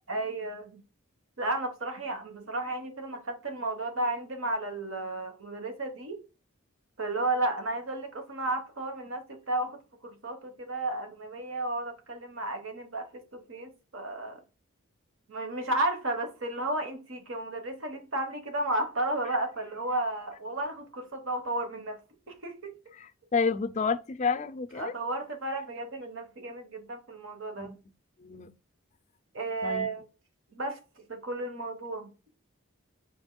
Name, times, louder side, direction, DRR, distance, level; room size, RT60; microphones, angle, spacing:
voice 1, 0.1-0.8 1.4-6.2 7.0-14.4 15.3-22.0 22.3-22.7 24.8-27.7 29.3-30.0 30.5-30.8 31.1-32.1, right 2 dB, 65° right, 1.2 m, -33 dB
voice 2, 23.3-24.9 27.6-27.7 28.2-28.5 29.6-29.9, left 5 dB, 30° left, 0.4 m, -29 dB
5.2 x 4.4 x 2.2 m
head